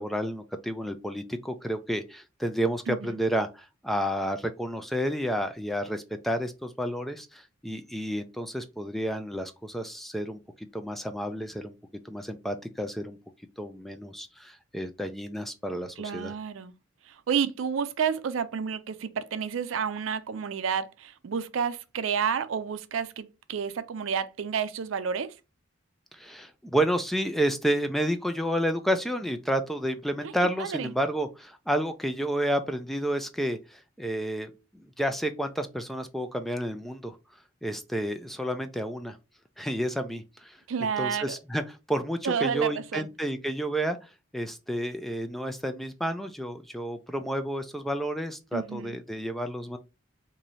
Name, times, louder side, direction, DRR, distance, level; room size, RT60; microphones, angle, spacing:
voice 1, 0.0-11.7 12.0-13.2 13.6-16.3 26.1-37.2 37.6-39.2 39.6-40.6 41.0-49.8, equal, ahead, 0.3 m, -30 dB
voice 2, 2.9-3.2 16.0-16.7 17.1-25.3 30.2-30.3 30.6-30.9 40.7-41.4 42.2-43.1 48.5-49.0, right 7 dB, 80° right, 0.4 m, -30 dB
3.0 x 2.6 x 4.0 m
head